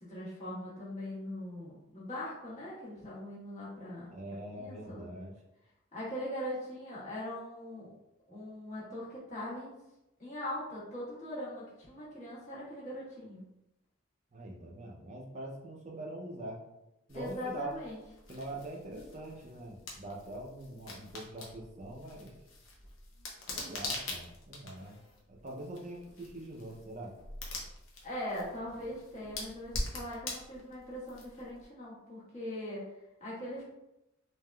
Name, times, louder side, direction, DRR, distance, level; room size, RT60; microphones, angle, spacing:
voice 1, 0.0-4.1 4.6-5.1 5.9-7.9 8.3-9.7 10.2-13.4 17.1-18.0 28.0-32.9 33.2-33.6, left 1 dB, 35° left, -8 dB, 1.2 m, -41 dB
voice 2, 4.1-5.3 14.3-16.6 17.1-17.7 18.3-22.3 23.5-25.0 25.3-27.1, right 2 dB, 35° right, -1 dB, 0.4 m, -43 dB
sound 1, 17.1-31.6, left 2 dB, 85° left, 0.6 m, -44 dB
3.5 x 2.4 x 2.2 m, 0.91 s
head